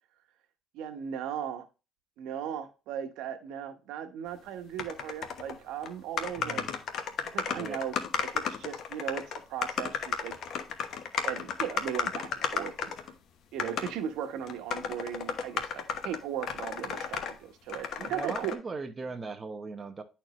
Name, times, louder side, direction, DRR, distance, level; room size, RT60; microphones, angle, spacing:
voice 1, 0.7-1.7 2.2-6.6 7.2-7.9 8.2-9.2 9.5-10.3 11.2-12.9 13.5-18.6, right 9 dB, 90° right, 1.2 m, -37 dB
sound 1, 4.8-5.6 5.8-5.9 6.2-13.1 13.6-13.9 14.5-17.3 17.7-18.5, left 7 dB, 60° left, 1.0 m, -34 dB
voice 2, 6.4-6.7 7.5-7.8 13.6-13.8 18.0-20.0, right 4 dB, 25° right, 0.9 m, -39 dB
10.5 x 4.4 x 3.1 m
cardioid pair, 145°, 0 cm